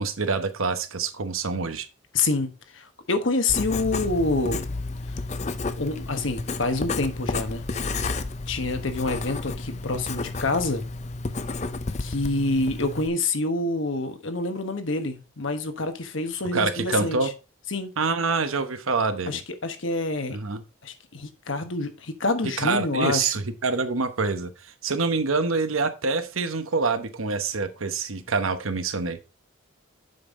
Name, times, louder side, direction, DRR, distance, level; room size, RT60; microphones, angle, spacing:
voice 1, 0.0-1.9 16.5-17.3 18.0-19.3 20.3-20.6 22.6-24.5 24.8-29.2, right 4 dB, 85° right, 1.0 m, -26 dB
voice 2, 2.1-4.7 5.8-7.6 8.5-10.9 12.0-17.3 17.7-17.9 19.3-20.4 20.8-23.3, left 3 dB, 70° left, 1.2 m, -27 dB
Writing, 3.5-13.1, left 3 dB, 35° left, 0.5 m, -31 dB
7.7 x 5.5 x 3.7 m
head